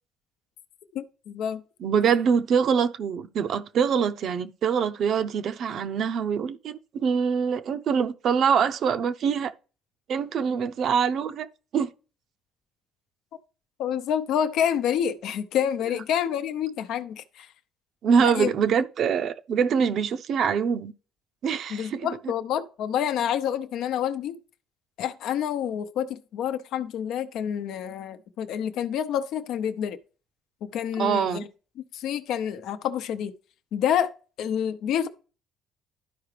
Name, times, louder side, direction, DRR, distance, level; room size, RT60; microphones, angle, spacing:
voice 1, 0.9-1.6 13.8-17.5 18.2-18.5 21.7-24.4 25.0-30.0 30.6-31.5 31.9-33.3 33.7-34.1 34.4-35.1, left 9 dB, 75° left, 0.7 m, -28 dB
voice 2, 1.8-9.5 10.1-11.5 11.7-11.9 18.0-20.9 21.4-22.1 31.0-31.4, right 7 dB, 60° right, 0.6 m, -24 dB
12.0 x 4.8 x 3.3 m
cardioid pair, 100°, 0 cm